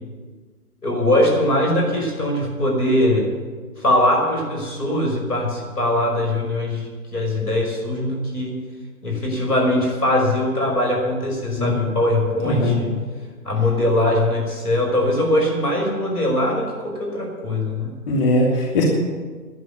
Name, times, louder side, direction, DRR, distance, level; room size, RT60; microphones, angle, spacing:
voice 1, 0.8-3.3 3.8-8.6 9.0-12.9 13.4-17.9, left 1 dB, 80° left, 0 dB, 5.7 m, -21 dB
voice 2, 12.4-12.8 18.1-18.8, left 1 dB, 40° left, -3 dB, 3.0 m, -19 dB
11.5 x 10.0 x 9.8 m, 1.5 s
figure-of-eight pair, 130°, 46 cm